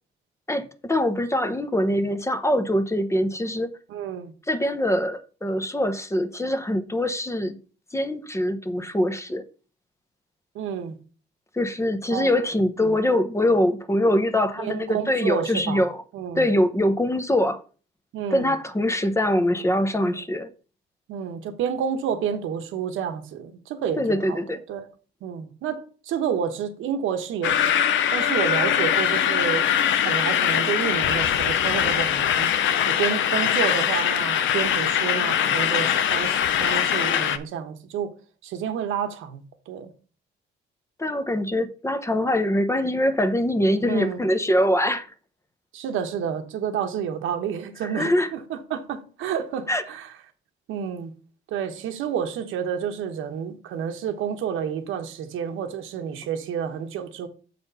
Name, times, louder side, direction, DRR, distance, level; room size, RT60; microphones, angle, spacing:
voice 1, 0.5-3.7 4.5-7.6 7.9-9.4 11.5-16.0 16.4-17.6 18.3-20.5 24.0-24.6 41.0-45.1 47.8-48.3 49.7-49.8, left 1 dB, 15° left, 0.8 m, -23 dB
voice 2, 3.9-4.3 10.5-10.9 12.1-12.4 12.8-12.9 14.6-15.8 16.1-16.5 18.1-18.5 21.1-24.4 24.7-24.9 25.2-27.8 28.1-32.5 32.8-38.1 38.4-39.9 43.8-44.2 45.7-50.1 50.7-51.1 51.5-57.3, right 8 dB, 90° right, 1.1 m, -30 dB
sound 1, 27.4-37.4, left 9 dB, 75° left, 0.7 m, -22 dB
7.0 x 4.2 x 5.5 m
cardioid pair, 90°, 20 cm